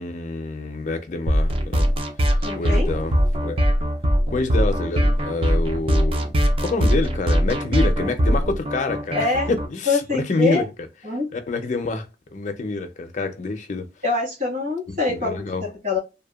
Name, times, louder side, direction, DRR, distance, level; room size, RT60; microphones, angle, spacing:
voice 1, 0.0-1.9 2.6-3.7 4.3-6.3 6.6-10.7 11.3-13.9 14.9-15.6, left 3 dB, 45° left, 0.4 m, -27 dB
sound 1, 1.3-9.7, equal, 30° right, 0.4 m, -21 dB
voice 2, 2.4-2.9 9.1-9.5 9.9-10.6 11.0-11.3 14.0-16.0, left 3 dB, 50° right, 1.5 m, -24 dB
2.7 x 2.1 x 2.3 m
head